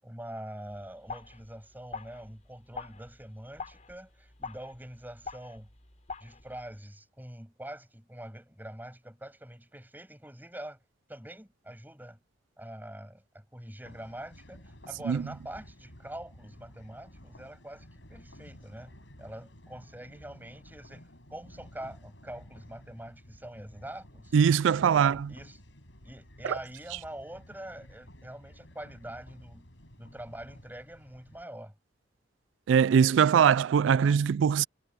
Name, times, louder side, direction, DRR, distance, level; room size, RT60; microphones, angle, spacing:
voice 1, 0.0-5.7 6.2-10.8 11.1-12.2 12.6-24.4 24.9-25.6 26.0-29.7 30.0-31.8, right 1 dB, 10° right, 7.8 m, -45 dB
sound 1, 0.7-6.8, left 4 dB, 40° left, 3.6 m, -45 dB
sound 2, 13.8-31.4, equal, 75° left, 7.5 m, -53 dB
voice 2, 24.3-25.3 32.7-34.6, right 7 dB, 80° right, 0.3 m, -22 dB
head